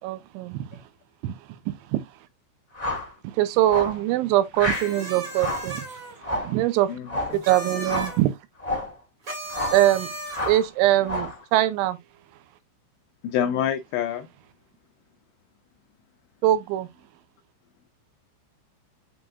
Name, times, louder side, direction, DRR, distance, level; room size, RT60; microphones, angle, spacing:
voice 1, 0.0-0.6 1.2-1.4 1.9-2.0 3.4-5.9 6.5-6.9 7.3-8.3 9.7-10.1 10.5-12.0 16.4-16.9, right 14 dB, 80° right, 2.8 m, -22 dB
sound 1, 2.7-3.1 3.7-4.0 4.5-4.9 5.3-5.7 6.2-6.6 7.1-7.4 7.8-8.2 8.6-8.9 9.5-9.9 10.3-10.7 11.0-11.4, left 1 dB, 15° left, 1.7 m, -30 dB
sound 2, 4.7-6.1 7.3-8.2 9.2-10.6, right 1 dB, 65° right, 0.8 m, -36 dB
voice 2, 6.9-7.4 13.2-14.3, left 9 dB, 90° left, 2.4 m, -28 dB
8.6 x 4.6 x 2.4 m
omnidirectional pair, 5.7 m